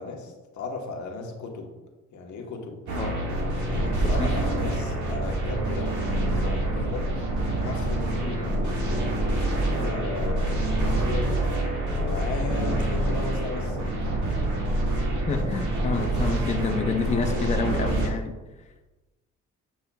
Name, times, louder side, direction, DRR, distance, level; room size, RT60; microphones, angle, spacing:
voice 1, 0.0-1.7 2.1-2.8 3.7-7.1 7.6-11.7 12.0-14.0, left 3 dB, 70° left, 2 dB, 1.2 m, -36 dB
sound 1, 2.9-18.1, right 1 dB, 75° right, 1.7 m, -26 dB
voice 2, 4.0-4.4 8.3-8.6 15.3-18.3, left 5 dB, 25° left, 5 dB, 0.5 m, -29 dB
8.3 x 5.4 x 2.3 m, 1.1 s
cardioid pair, 90°, 30 cm